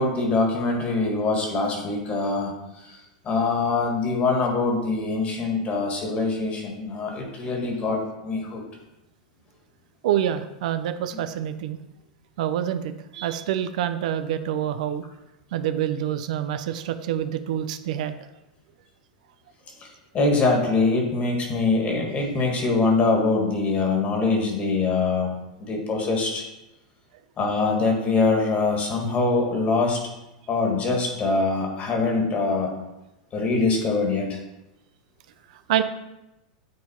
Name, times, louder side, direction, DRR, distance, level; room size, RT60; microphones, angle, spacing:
voice 1, 0.0-2.6 3.3-8.6 20.1-25.3 25.6-26.4 27.4-30.0 30.5-32.7 33.3-34.4, left 3 dB, 30° left, 2 dB, 1.9 m, -23 dB
voice 2, 10.0-11.8 12.4-15.0 15.5-18.1 35.7-35.8, right 10 dB, 70° right, 10 dB, 0.5 m, -26 dB
8.5 x 3.8 x 4.4 m, 0.94 s
hypercardioid pair, 115°, 4 cm